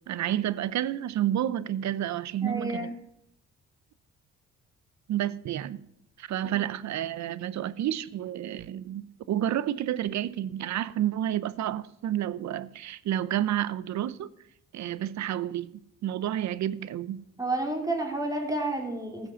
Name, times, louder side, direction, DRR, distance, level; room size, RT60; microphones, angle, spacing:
voice 1, 0.1-2.9 5.1-5.8 6.2-14.3 14.7-17.2, right 11 dB, 65° right, 0.7 m, -30 dB
voice 2, 2.4-2.9 6.4-6.6 17.4-19.3, right 2 dB, 10° right, 3.1 m, -30 dB
15.0 x 6.2 x 7.0 m
cardioid pair, 90°, 30 cm